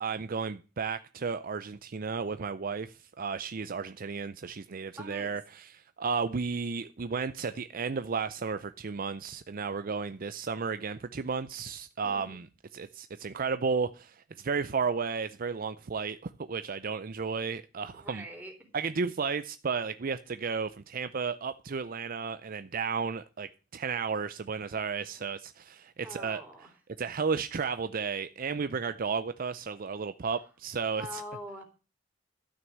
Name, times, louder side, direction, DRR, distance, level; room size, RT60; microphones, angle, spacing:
voice 1, 0.0-12.5 12.7-18.2 18.7-26.4 27.0-31.2, right 5 dB, 45° right, 0.5 m, -33 dB
voice 2, 5.0-5.3 12.0-12.4 18.0-18.5 26.0-26.7 31.0-31.6, left 1 dB, 10° right, 3.6 m, -43 dB
12.5 x 6.2 x 7.9 m
head